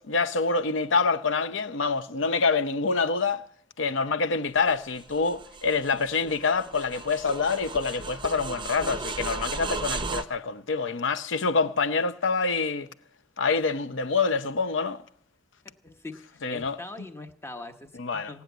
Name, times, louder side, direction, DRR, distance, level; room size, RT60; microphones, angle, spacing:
voice 1, 0.0-3.5 3.8-12.9 13.4-15.0 16.4-16.8 18.0-18.3, left 4 dB, 75° left, 0.7 m, -26 dB
sound 1, 4.6-10.2, right 4 dB, 25° right, 0.5 m, -36 dB
voice 2, 15.8-18.4, left 2 dB, 15° left, 1.0 m, -42 dB
17.5 x 7.0 x 9.2 m
head